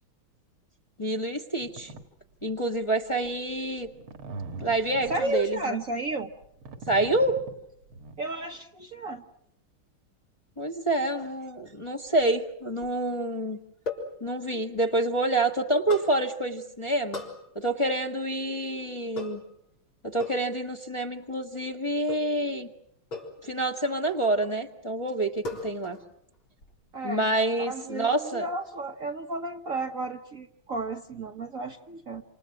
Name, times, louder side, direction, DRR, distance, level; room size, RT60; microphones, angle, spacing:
voice 1, 1.0-1.9 2.4-3.9 4.6-5.8 6.9-7.4 10.6-13.6 14.2-17.2 17.5-19.4 20.0-22.7 23.4-26.0 27.0-28.5, right 2 dB, 15° left, 4 dB, 1.5 m, -27 dB
sound 1, 1.6-2.0 2.5-2.7 3.2-8.2, right 3 dB, 80° right, 2.9 m, -42 dB
voice 2, 5.1-6.3 8.2-9.2 26.9-27.2 27.6-28.1 28.3-32.2, right 2 dB, 45° right, 5 dB, 1.4 m, -32 dB
sound 2, 12.1-13.1 13.9-14.2 15.9-16.2 17.1-17.4 19.2-19.5 20.2-20.5 22.1-22.4 23.1-23.4 24.1-24.6 25.4-26.1 26.3-26.8, left 3 dB, 70° left, 5.0 m, -38 dB
28.5 x 28.0 x 6.1 m, 0.75 s
omnidirectional pair, 2.3 m